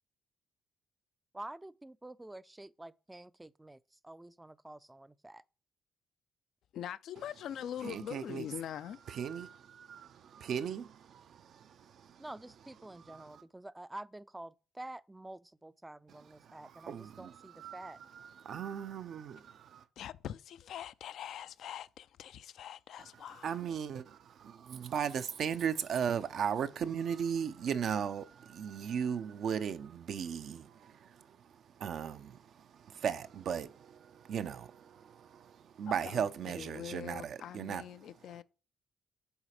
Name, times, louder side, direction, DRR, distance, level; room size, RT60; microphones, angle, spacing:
voice 1, 1.3-5.4 12.2-18.0, right 1 dB, 10° right, 0.4 m, -48 dB
voice 2, 6.7-9.1 20.0-23.6 35.9-36.3 36.5-38.4, left 10 dB, 70° left, 0.4 m, -43 dB
voice 3, 7.8-8.5 9.1-12.2 13.1-13.4 16.4-19.8 23.4-24.4 24.7-38.1, right 8 dB, 65° right, 0.5 m, -37 dB
7.2 x 4.0 x 4.9 m
cardioid pair, 80°, 0 cm